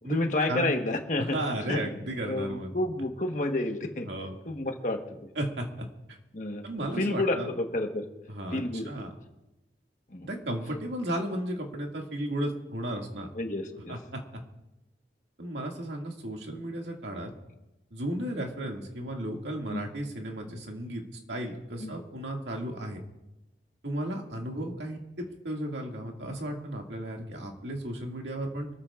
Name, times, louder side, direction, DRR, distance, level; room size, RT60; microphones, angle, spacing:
voice 1, 0.0-1.4 1.7-1.8 2.3-4.1 4.5-5.3 6.3-6.6 7.0-8.1 8.5-8.9 10.1-10.3 13.3-14.0 19.7-19.8 21.8-21.9, left 2 dB, 45° left, 4 dB, 1.3 m, -30 dB
voice 2, 1.2-2.7 4.1-4.4 5.4-5.9 6.6-7.5 8.3-9.1 10.2-13.3 13.9-14.2 15.4-17.3 17.9-21.0 21.3-23.0 23.8-28.7, right 1 dB, 85° right, 1 dB, 2.2 m, -34 dB
24.5 x 14.0 x 2.5 m, 0.97 s
head